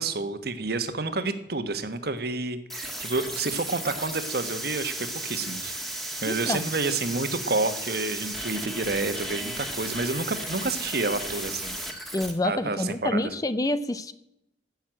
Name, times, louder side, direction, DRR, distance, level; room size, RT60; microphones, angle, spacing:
voice 1, 0.0-5.7 6.2-11.8 12.4-13.3, right 3 dB, 55° right, 10 dB, 1.3 m, -29 dB
sound 1, 2.7-12.3, right 1 dB, ahead, 1.7 m, -35 dB
voice 2, 6.3-6.7 12.1-14.1, left 1 dB, 20° left, 14 dB, 0.5 m, -28 dB
15.0 x 6.5 x 8.7 m, 0.85 s
head